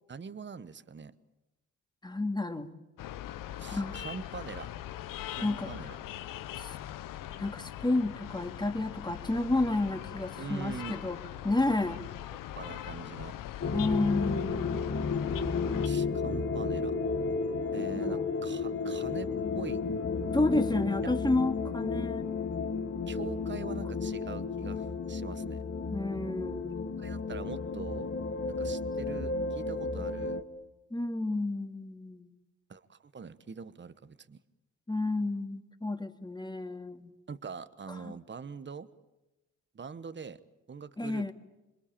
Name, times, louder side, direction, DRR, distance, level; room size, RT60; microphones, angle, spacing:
voice 1, 0.1-1.1 3.6-4.7 5.3-6.0 10.4-11.3 12.5-13.4 15.8-16.9 17.7-19.8 21.0-21.1 23.1-25.6 27.0-28.1 28.5-30.4 32.7-34.4 37.3-38.9 39.7-40.4 40.7-41.3, right 5 dB, 35° right, 14 dB, 1.2 m, -43 dB
voice 2, 2.0-2.7 3.7-4.0 5.4-5.7 6.6-6.8 7.4-12.0 13.7-15.1 17.7-18.4 20.3-22.3 25.9-27.1 30.9-32.3 34.9-37.1 37.9-38.2 41.0-41.3, left 2 dB, 15° left, 7 dB, 2.3 m, -31 dB
sound 1, 3.0-15.9, left 12 dB, 75° left, 0.9 m, -41 dB
sound 2, 13.6-30.4, left 4 dB, 45° left, 1.8 m, -33 dB
27.0 x 22.0 x 8.8 m, 1.0 s
supercardioid pair, 55°, 33 cm